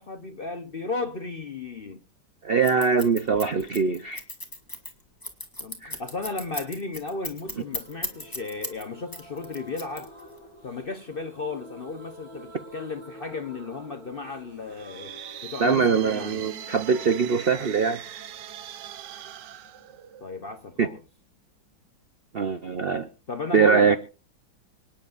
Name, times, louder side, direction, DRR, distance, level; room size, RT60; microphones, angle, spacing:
voice 1, 0.0-2.0 5.6-10.1 10.6-15.2 15.4-16.5 20.2-21.0 23.3-24.0, left 3 dB, 50° left, 0.7 m, -34 dB
voice 2, 2.4-4.2 5.8-6.0 15.6-18.0 20.8-20.9 22.3-23.1 23.5-24.0, right 5 dB, 90° right, 0.5 m, -22 dB
Scissors, 2.6-8.8 9.1-10.4, left 1 dB, 10° left, 2.3 m, -35 dB
sound 1, 7.4-21.0 21.2-21.3 21.6-21.7, equal, 30° right, 6.5 m, -48 dB
sound 2, 14.6-20.5, right 11 dB, 65° right, 1.3 m, -41 dB
25.5 x 10.5 x 2.5 m
omnidirectional pair, 2.1 m